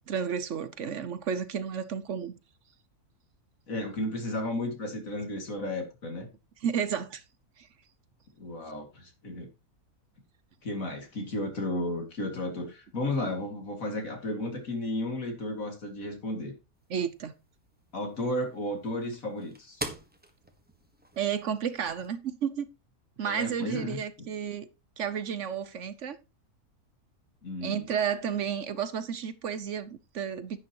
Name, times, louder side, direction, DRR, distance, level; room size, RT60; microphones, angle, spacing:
voice 1, 0.1-2.4 6.6-7.2 16.9-17.3 21.2-22.7 23.2-24.7 25.0-26.2 27.6-30.6, right 7 dB, 60° right, 1.1 m, -32 dB
voice 2, 3.7-6.3 8.4-9.5 10.6-16.5 17.9-19.8 23.2-24.0 27.4-27.9, left 1 dB, 60° left, 2.7 m, -33 dB
sound 1, 16.7-22.1, right 1 dB, 5° right, 1.2 m, -45 dB
11.0 x 8.9 x 3.0 m
omnidirectional pair, 1.6 m